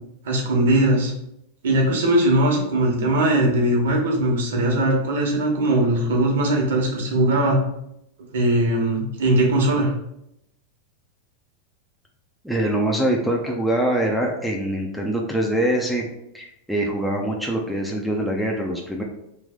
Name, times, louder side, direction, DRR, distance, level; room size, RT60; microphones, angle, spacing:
voice 1, 0.2-1.1 1.6-7.6 8.3-9.9, right 1 dB, 80° right, 0 dB, 1.2 m, -20 dB
voice 2, 12.4-16.1 16.3-19.0, right 1 dB, ahead, -1 dB, 0.6 m, -24 dB
3.3 x 3.0 x 3.6 m, 0.81 s
hypercardioid pair, 125°, 0 cm